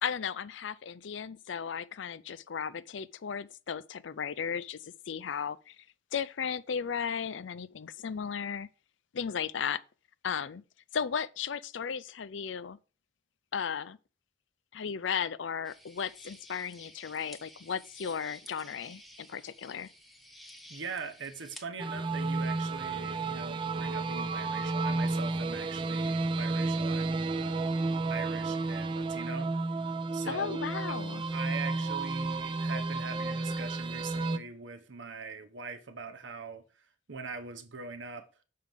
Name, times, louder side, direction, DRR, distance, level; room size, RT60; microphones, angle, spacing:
voice 1, 0.0-5.8 6.1-8.7 9.1-9.8 10.2-10.6 10.9-12.8 13.5-14.0 14.7-19.9 30.2-31.2, left 7 dB, 80° left, 0.5 m, -35 dB
sound 1, 15.6-21.6, equal, ahead, 0.8 m, -53 dB
voice 2, 20.7-29.6 30.1-30.6 30.9-31.0 31.3-38.3, right 4 dB, 85° right, 1.0 m, -42 dB
sound 2, 21.8-34.4, right 3 dB, 25° right, 0.5 m, -32 dB
6.6 x 4.7 x 5.2 m
head